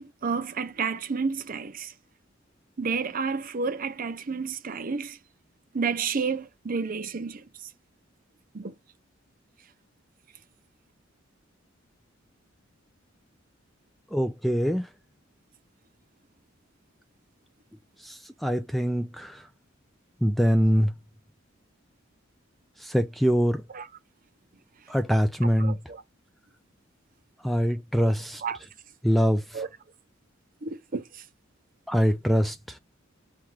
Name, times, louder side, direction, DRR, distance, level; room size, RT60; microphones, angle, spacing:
voice 1, 0.0-1.9 2.8-5.2 5.7-7.4 8.5-8.7 23.7-23.9 25.6-26.0 28.4-28.6 29.5-29.7 30.6-31.0, right 5 dB, 45° right, 0.6 m, -30 dB
voice 2, 14.1-14.9 18.0-19.4 20.2-20.9 22.8-23.6 24.9-25.8 27.4-28.4 29.0-29.4 31.9-32.6, equal, ahead, 0.3 m, -23 dB
5.7 x 2.4 x 3.2 m
head